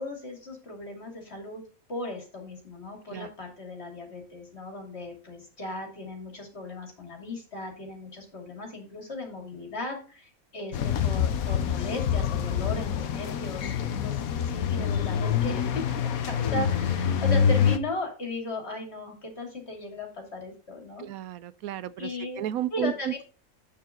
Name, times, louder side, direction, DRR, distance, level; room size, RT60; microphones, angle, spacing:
voice 1, 0.0-1.6 1.9-21.1 22.0-22.4 22.7-23.2, left 2 dB, 45° left, 3.0 m, -37 dB
sound 1, 10.7-17.8, left 7 dB, 75° left, 1.3 m, -26 dB
voice 2, 21.0-22.1 22.4-23.2, right 12 dB, 80° right, 1.0 m, -32 dB
8.8 x 6.8 x 3.8 m
omnidirectional pair, 1.5 m